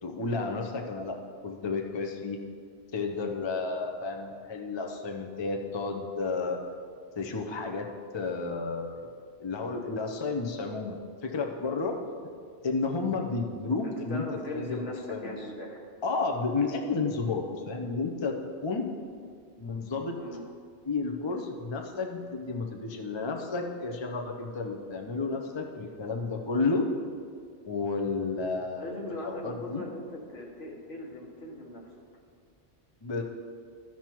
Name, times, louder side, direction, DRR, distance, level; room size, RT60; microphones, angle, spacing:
voice 1, 0.0-1.1 1.4-2.4 2.9-6.6 7.2-7.9 8.1-9.1 9.4-12.0 12.6-14.2 14.5-14.8 15.1-15.3 16.0-18.3 18.6-18.8 19.6-20.2 20.9-26.9 27.7-29.8 33.0-33.2, left 4 dB, 30° left, 2 dB, 0.6 m, -31 dB
voice 2, 13.8-15.8 20.1-20.4 28.7-31.9, left 1 dB, 70° left, -1 dB, 1.6 m, -39 dB
13.0 x 5.9 x 4.5 m, 2.1 s
omnidirectional pair, 1.1 m